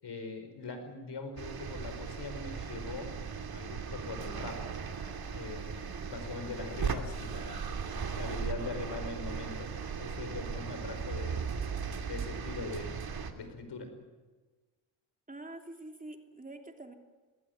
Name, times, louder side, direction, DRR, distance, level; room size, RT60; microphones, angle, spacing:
voice 1, 0.0-3.1 3.5-4.6 5.3-7.8 8.2-9.7 10.0-11.4 12.1-13.9, left 3 dB, 55° left, 8 dB, 5.4 m, -42 dB
sound 1, 1.4-13.3, right 6 dB, 45° right, 2.7 m, -37 dB
voice 2, 15.3-16.9, right 2 dB, 15° right, 4 dB, 3.1 m, -46 dB
20.0 x 18.5 x 9.5 m, 1.3 s
supercardioid pair, 55°, 50 cm